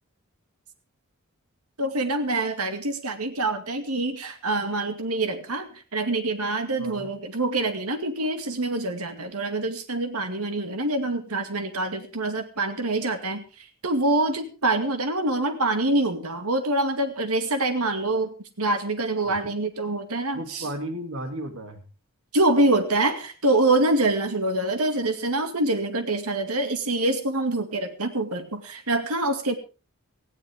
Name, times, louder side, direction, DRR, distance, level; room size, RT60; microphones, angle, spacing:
voice 1, 1.8-20.7 22.3-29.5, right 2 dB, 90° right, 7 dB, 2.4 m, -25 dB
voice 2, 6.8-7.1 19.3-19.4 20.3-21.8, right 1 dB, 65° right, 7 dB, 2.8 m, -34 dB
18.5 x 15.5 x 3.6 m, 0.32 s
head